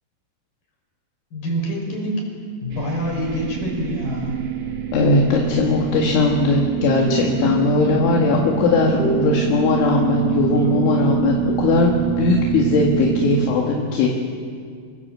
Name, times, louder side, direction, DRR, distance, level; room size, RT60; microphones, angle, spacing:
voice 1, 1.3-2.3 2.6-4.4, equal, 45° left, 0 dB, 7.0 m, -26 dB
sound 1, 2.7-13.5, right 11 dB, 65° right, 1.9 m, -25 dB
voice 2, 4.9-14.2, left 3 dB, 70° left, -1 dB, 4.3 m, -19 dB
sound 2, 6.8-7.6 8.1-10.3 10.5-11.1, equal, 35° right, 4.4 m, -30 dB
26.0 x 25.0 x 7.6 m, 2.2 s
omnidirectional pair, 5.8 m